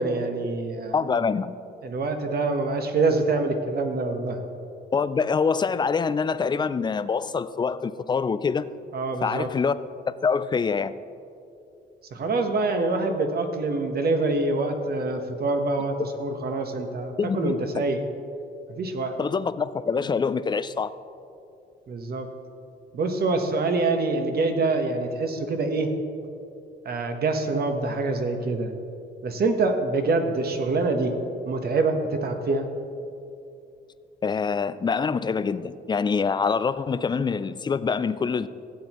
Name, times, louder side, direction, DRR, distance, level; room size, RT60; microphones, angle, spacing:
voice 1, 0.0-1.2 1.8-4.4 8.9-9.5 12.1-18.0 18.7-19.1 21.9-22.3 22.9-25.9 26.8-28.7 29.2-31.1 31.4-32.7, right 3 dB, 50° right, 5 dB, 1.1 m, -25 dB
voice 2, 0.9-1.5 4.9-8.7 9.2-9.7 10.2-10.9 17.2-17.6 19.2-20.9 34.2-38.5, left 5 dB, 20° left, 14 dB, 0.3 m, -25 dB
16.0 x 8.1 x 3.0 m, 2.6 s
cardioid pair, 90°, 20 cm